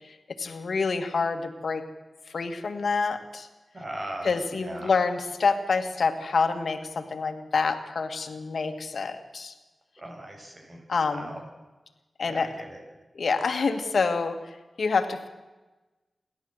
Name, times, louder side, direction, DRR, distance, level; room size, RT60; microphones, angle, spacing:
voice 1, 0.0-1.8 2.3-3.5 4.2-9.5 10.9-11.4 12.2-12.5 13.1-15.3, left 4 dB, 75° left, 7 dB, 2.0 m, -27 dB
voice 2, 3.7-4.9 10.0-11.5 12.3-12.8, right 1 dB, 45° right, 2 dB, 7.5 m, -39 dB
27.5 x 12.0 x 8.0 m, 1.1 s
cardioid pair, 45°, 0 cm